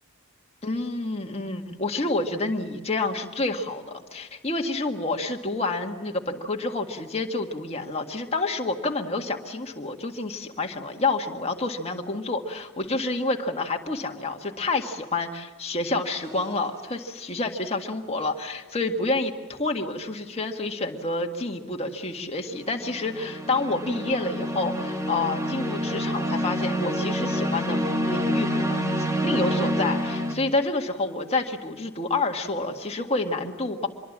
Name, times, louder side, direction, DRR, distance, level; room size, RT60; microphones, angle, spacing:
voice 1, 0.6-33.9, left 2 dB, 30° left, 3 dB, 1.9 m, -28 dB
sound 1, 16.2-16.6 22.5-30.3, equal, 15° right, 1.6 m, -27 dB
25.5 x 22.5 x 7.5 m, 1.4 s
head